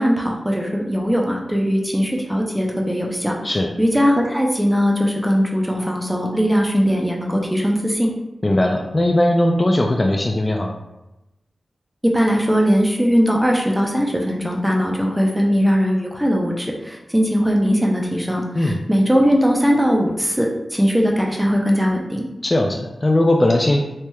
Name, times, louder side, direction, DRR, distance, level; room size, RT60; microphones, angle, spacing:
voice 1, 0.0-3.4 3.8-8.1 12.0-22.2, equal, 10° right, 0 dB, 0.6 m, -19 dB
voice 2, 8.4-10.7 18.5-18.8 22.4-23.8, left 1 dB, 35° left, 2 dB, 0.3 m, -18 dB
3.1 x 2.7 x 2.3 m, 0.96 s
cardioid pair, 40°, 0 cm